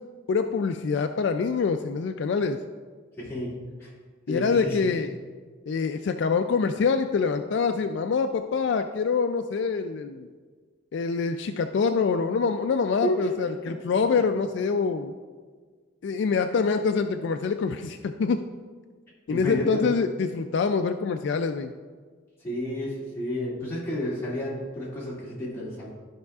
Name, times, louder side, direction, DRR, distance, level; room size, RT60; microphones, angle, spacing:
voice 1, 0.3-2.6 4.3-5.1 5.7-10.3 10.9-15.1 16.0-18.4 19.3-21.7, left 5 dB, 60° left, 7 dB, 0.3 m, -25 dB
voice 2, 3.2-3.9 4.3-4.9 13.0-13.4 13.7-13.8 19.3-19.9 22.4-25.9, left 1 dB, 15° left, -8 dB, 2.1 m, -31 dB
13.0 x 5.6 x 2.4 m, 1.5 s
head